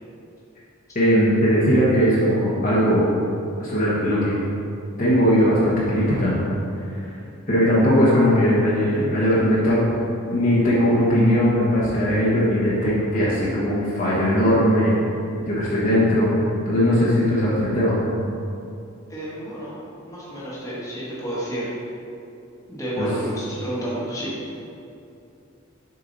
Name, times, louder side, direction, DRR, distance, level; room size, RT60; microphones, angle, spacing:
voice 1, 0.9-3.0 3.6-4.3 5.0-6.4 7.0-7.1 7.5-9.9 10.3-15.0 15.4-16.4 16.6-17.9 23.0-23.1, equal, 40° left, -8 dB, 1.2 m, -19 dB
voice 2, 19.1-19.7 20.0-21.7 22.7-24.3, right 1 dB, 15° left, -8 dB, 1.5 m, -30 dB
6.8 x 4.6 x 4.0 m, 2.6 s
head